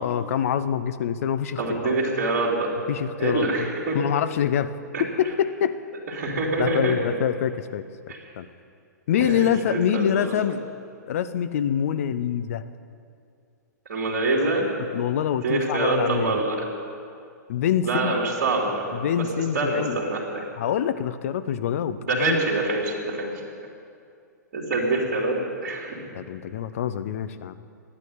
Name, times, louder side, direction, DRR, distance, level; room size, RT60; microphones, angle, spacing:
voice 1, 0.0-1.9 2.9-3.7 3.9-4.7 5.2-5.8 6.6-7.8 8.4-8.5 9.1-10.6 11.1-12.6 14.9-16.4 17.5-18.1 18.9-20.0 20.6-22.4 26.1-27.5, left 9 dB, 50° left, 11 dB, 0.7 m, -25 dB
voice 2, 1.6-2.7 3.2-4.0 4.9-5.0 6.2-6.9 8.1-8.2 9.1-10.3 13.9-14.7 15.4-16.6 17.8-18.9 19.2-19.3 19.5-20.4 22.0-23.3 24.5-25.4 25.6-26.0, right 2 dB, 45° right, -4 dB, 2.8 m, -25 dB
12.0 x 10.0 x 9.3 m, 2.4 s
figure-of-eight pair, 110°, 10 cm